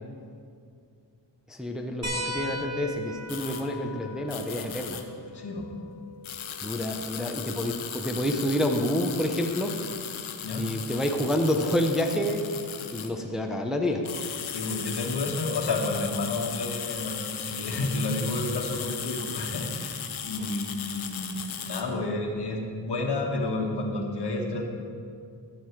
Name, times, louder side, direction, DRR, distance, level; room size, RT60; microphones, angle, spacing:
voice 1, 1.5-5.0 6.6-9.7 10.6-12.5 12.9-14.0, equal, ahead, 2 dB, 0.8 m, -28 dB
sound 1, 2.0-7.1 8.6-8.7 10.4-10.5, left 1 dB, 35° right, 2.7 m, -38 dB
sound 2, 3.3-3.6 4.3-5.0 6.2-13.1 13.9-21.8, left 8 dB, 80° left, 0.9 m, -37 dB
voice 2, 5.3-5.7 10.4-10.6 14.4-21.4 21.6-24.6, left 2 dB, 55° left, 1 dB, 1.6 m, -30 dB
13.5 x 6.7 x 4.7 m, 2.3 s
cardioid pair, 75°, 47 cm